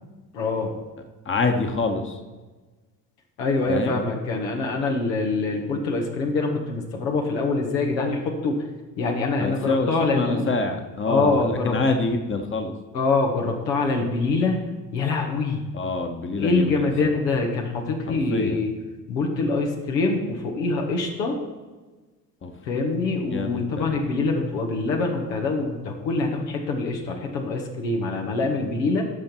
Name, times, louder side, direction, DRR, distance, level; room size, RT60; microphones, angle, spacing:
voice 1, 0.3-0.7 3.4-8.6 9.0-10.4 11.1-11.8 12.9-15.7 16.4-18.7 19.1-21.4 22.7-29.0, left 3 dB, 75° left, 1 dB, 1.9 m, -24 dB
voice 2, 1.2-2.2 3.7-4.0 9.4-12.7 15.7-16.9 18.1-18.6 22.4-22.5 23.3-23.9, left 3 dB, 25° left, 4 dB, 1.4 m, -26 dB
17.0 x 6.5 x 4.6 m, 1.3 s
figure-of-eight pair, 55°, 50 cm